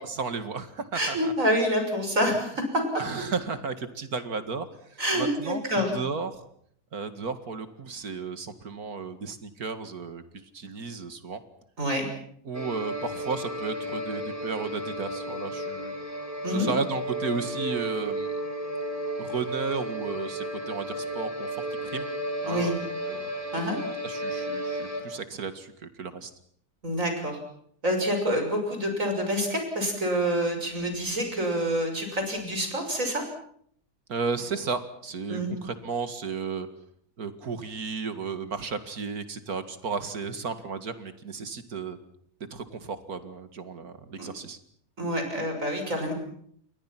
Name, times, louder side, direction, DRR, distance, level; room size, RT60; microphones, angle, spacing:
voice 1, 0.0-1.3 2.9-6.4 6.9-10.2 10.5-11.4 12.5-15.9 16.5-18.3 19.2-22.1 22.4-23.3 24.0-26.3 34.1-36.7 37.2-42.0 42.5-44.6, right 5 dB, 85° right, 10 dB, 2.5 m, -34 dB
voice 2, 0.9-2.8 5.0-5.9 11.8-12.1 16.4-16.7 22.5-22.7 23.5-23.8 26.8-27.4 27.8-33.2 35.3-35.5 44.2-44.3 45.0-46.1, equal, 60° right, 4 dB, 6.7 m, -27 dB
sound 1, 12.5-25.0, equal, 10° right, 4.5 m, -33 dB
29.0 x 22.5 x 6.0 m, 0.64 s
omnidirectional pair, 1.6 m